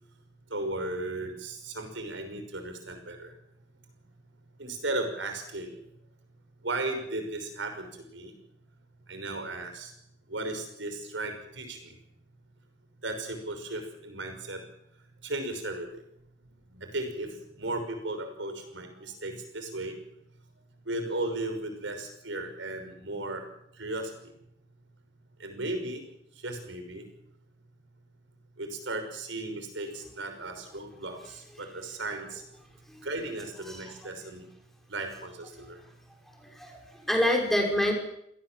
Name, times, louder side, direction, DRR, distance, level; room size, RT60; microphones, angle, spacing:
voice 1, 0.5-3.3 4.6-5.8 6.6-8.3 9.1-9.9 10.3-11.9 13.0-14.6 15.2-15.9 16.7-17.3 17.6-19.9 20.9-23.4 23.8-24.1 25.4-26.0 26.4-27.1 28.6-32.4 33.0-34.4 34.9-35.8, right 2 dB, 85° right, 6 dB, 5.7 m, -35 dB
voice 2, 36.4-37.9, left 1 dB, ahead, 1 dB, 5.8 m, -27 dB
26.5 x 18.5 x 7.6 m, 0.76 s
head